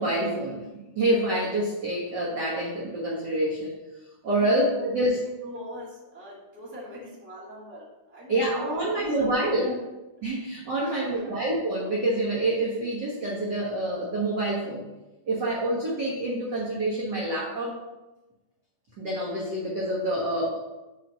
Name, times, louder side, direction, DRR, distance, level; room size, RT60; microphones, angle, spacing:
voice 1, 0.0-3.7 4.2-5.2 8.3-9.7 10.2-14.8 15.3-17.8 19.0-20.6, right 1 dB, 55° right, -6 dB, 1.2 m, -27 dB
voice 2, 4.3-9.8 10.8-11.4, left 1 dB, 5° right, -6 dB, 1.3 m, -42 dB
6.0 x 4.1 x 5.3 m, 1.0 s
omnidirectional pair, 3.6 m